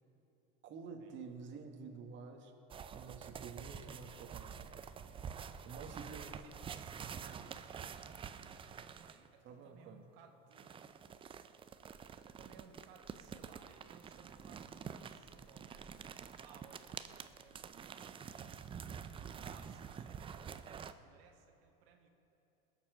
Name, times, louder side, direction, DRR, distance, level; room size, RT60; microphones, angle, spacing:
voice 1, 0.6-2.5 2.9-4.6 5.6-6.3 9.4-10.1, right 5 dB, 40° right, 3 dB, 1.6 m, -49 dB
sound 1, 2.7-9.3 10.5-20.9, right 7 dB, 20° right, 0.4 m, -48 dB
voice 2, 5.9-8.0 8.3-22.1, right 6 dB, 75° right, 3 dB, 1.3 m, -62 dB
20.5 x 7.4 x 6.2 m, 2.9 s
supercardioid pair, 115°, 30 cm